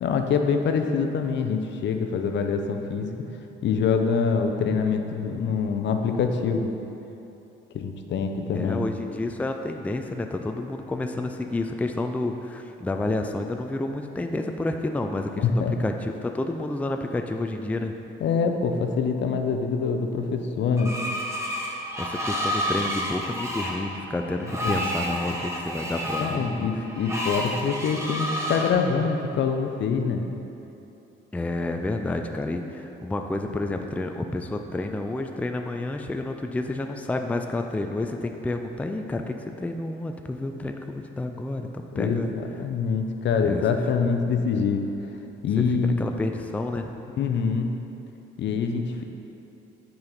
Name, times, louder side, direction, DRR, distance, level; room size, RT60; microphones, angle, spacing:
voice 1, 0.0-3.3 3.6-6.7 7.7-8.8 15.4-15.8 18.2-21.0 24.6-24.9 26.2-30.2 41.9-44.8 45.4-46.0 47.2-47.7 48.4-49.0, left 5 dB, 65° left, 5 dB, 0.6 m, -25 dB
voice 2, 8.5-17.9 22.0-26.7 31.3-42.3 43.4-43.6 45.6-45.7 46.0-46.9, left 2 dB, 5° left, 5 dB, 0.4 m, -30 dB
Screech, 20.8-28.7, equal, 15° right, 1.1 m, -30 dB
7.0 x 5.1 x 4.0 m, 2.9 s
cardioid pair, 90°, 20 cm